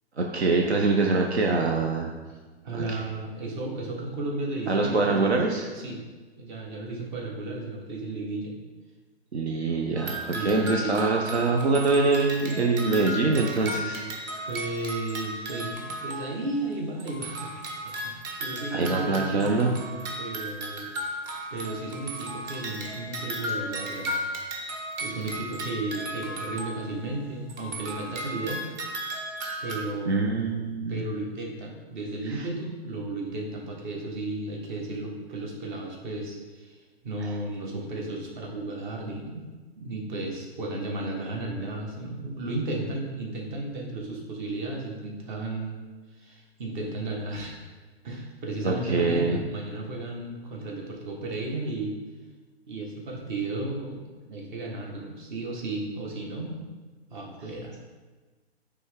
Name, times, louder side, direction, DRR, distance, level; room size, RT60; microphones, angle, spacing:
voice 1, 0.2-2.1 2.7-3.0 4.7-5.7 9.3-14.0 14.3-14.5 18.7-19.7 30.1-31.0 32.3-32.4 37.2-37.3 48.6-49.4, right 3 dB, 85° right, 1 dB, 0.8 m, -24 dB
voice 2, 2.6-5.3 5.8-6.0 6.3-8.5 10.1-11.0 14.5-17.5 17.8-19.6 20.2-20.9 21.5-24.2 25.0-28.6 29.6-30.3 30.9-36.8 37.0-39.4 39.8-45.8 46.2-47.6 48.0-51.9 52.7-56.5 57.1-57.7, right 2 dB, 50° right, 0 dB, 1.7 m, -34 dB
sound 1, 10.0-16.7 17.0-27.2 27.5-29.9, right 1 dB, 30° right, 0.9 m, -35 dB
9.2 x 3.4 x 3.7 m, 1.3 s
figure-of-eight pair, 125°, 32 cm